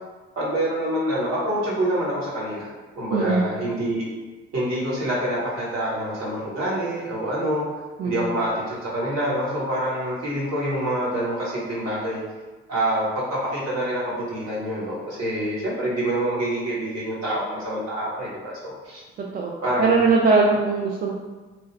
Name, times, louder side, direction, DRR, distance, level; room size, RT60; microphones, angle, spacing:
voice 1, 0.4-4.1 4.5-7.6 8.0-12.2 12.7-19.0 19.6-20.0, right 1 dB, 55° right, -7 dB, 1.2 m, -26 dB
voice 2, 3.1-3.4 8.0-8.3 19.2-19.5 19.8-21.1, right 4 dB, 30° right, -2 dB, 0.4 m, -20 dB
2.9 x 2.2 x 3.2 m, 1.3 s
figure-of-eight pair, 40°, 32 cm